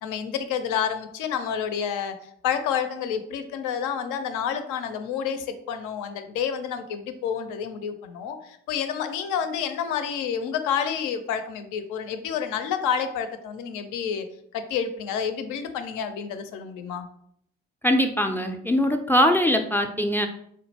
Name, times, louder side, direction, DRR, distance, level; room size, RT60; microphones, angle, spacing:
voice 1, 0.0-2.1 2.4-14.3 14.5-17.1, left 7 dB, 70° left, 9 dB, 0.5 m, -29 dB
voice 2, 17.8-20.3, equal, 5° left, 6 dB, 0.3 m, -22 dB
3.7 x 2.1 x 2.7 m, 0.68 s
hypercardioid pair, 45°, 32 cm